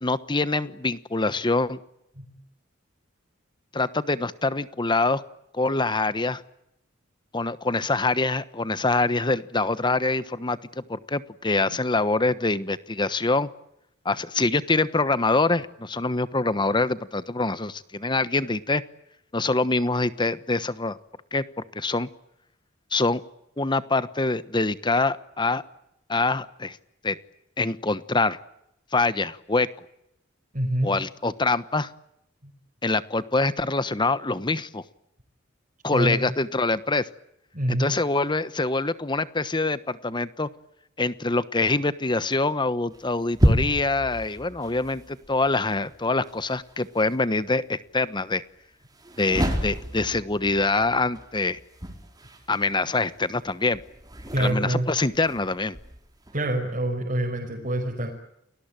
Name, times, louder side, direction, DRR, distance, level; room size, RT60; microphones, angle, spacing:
voice 1, 0.0-1.8 3.7-5.2 5.5-6.4 7.3-13.5 14.0-18.8 19.3-21.0 21.3-21.4 21.7-22.1 22.9-23.2 23.6-25.6 26.1-26.8 27.0-27.2 27.6-28.4 28.9-29.7 30.8-31.9 32.8-34.8 35.8-37.1 37.7-40.5 41.0-48.4 49.2-51.6 52.5-53.8 54.4-55.8, left 3 dB, 25° left, 15 dB, 1.1 m, -25 dB
voice 2, 30.5-30.9 35.9-36.3 37.5-37.8 54.3-54.8 56.3-58.1, right 1 dB, 40° right, -1 dB, 5.7 m, -26 dB
sound 1, 42.9-47.2 48.9-56.4, equal, 20° right, 4.9 m, -30 dB
29.5 x 20.5 x 9.1 m, 0.81 s
head